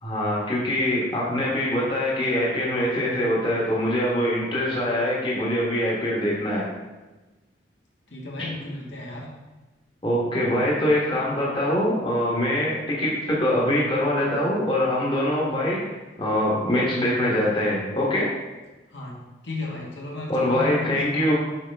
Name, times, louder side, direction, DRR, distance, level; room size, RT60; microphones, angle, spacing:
voice 1, 0.0-6.7 10.0-15.8 16.2-18.3 20.3-21.3, left 1 dB, 25° left, -4 dB, 1.2 m, -23 dB
voice 2, 8.1-9.3 18.9-21.3, left 2 dB, 75° left, -2 dB, 1.4 m, -34 dB
7.2 x 5.0 x 3.4 m, 1.2 s
head